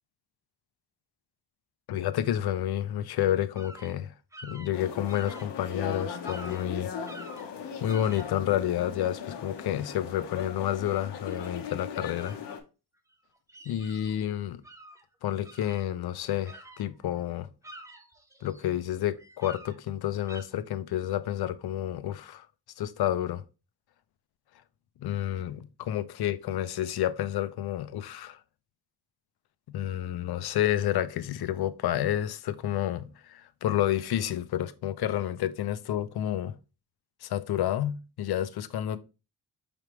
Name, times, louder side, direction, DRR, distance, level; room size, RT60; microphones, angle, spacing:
voice 1, 1.9-4.1 4.4-6.9 7.8-12.4 13.7-14.6 15.2-17.5 18.4-22.5 22.8-23.4 25.0-28.4 29.7-36.6 37.2-39.0, left 11 dB, 65° left, 0.5 m, -30 dB
sound 1, 3.5-4.0 4.3-5.5 5.9-6.0 6.2-6.7 7.1-7.5 7.9-8.3 10.9-11.0 11.3-11.4 12.1-12.4 13.1-14.3 14.6-15.0 15.4-17.1 17.4-18.7 19.1-19.8 20.2-20.4, right 1 dB, 10° right, 0.4 m, -48 dB
sound 2, 4.7-12.6, left 7 dB, 80° left, 0.9 m, -38 dB
4.8 x 3.4 x 3.0 m
wide cardioid pair, 145°, 41 cm